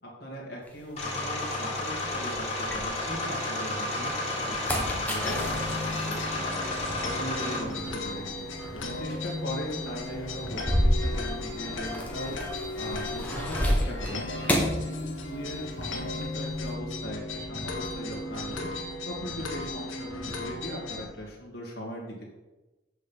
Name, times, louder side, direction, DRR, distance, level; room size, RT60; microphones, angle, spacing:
voice 1, 0.0-6.6 7.0-22.2, equal, 50° left, -4 dB, 2.2 m, -39 dB
sound 1, 0.7-3.4 3.9-15.7 15.9-16.7, equal, 10° left, 1.4 m, -32 dB
sound 2, 1.0-7.6, left 2 dB, 35° left, 2.5 m, -32 dB
sound 3, 5.2-21.0, left 2 dB, 85° left, 1.6 m, -36 dB
8.2 x 6.5 x 5.5 m, 1.1 s
head